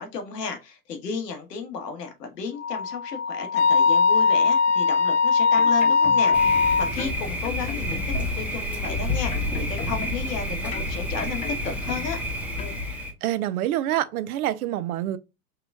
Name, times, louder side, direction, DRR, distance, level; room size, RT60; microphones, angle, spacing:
voice 1, 0.0-12.2, left 5 dB, 85° left, 1.4 m, -34 dB
Wind instrument woodwind instrument, 2.6-6.9, left 5 dB, 45° left, 0.7 m, -20 dB
sound 1, 5.3-6.6 7.0-8.5 8.8-10.4 10.7-12.2 12.6-12.8, left 7 dB, 15° left, 0.4 m, -38 dB
Thunder, 6.3-13.1, left 1 dB, 5° right, 0.9 m, -29 dB
voice 2, 12.9-15.2, right 13 dB, 65° right, 0.7 m, -27 dB
4.8 x 3.1 x 2.3 m
hypercardioid pair, 105°, 47 cm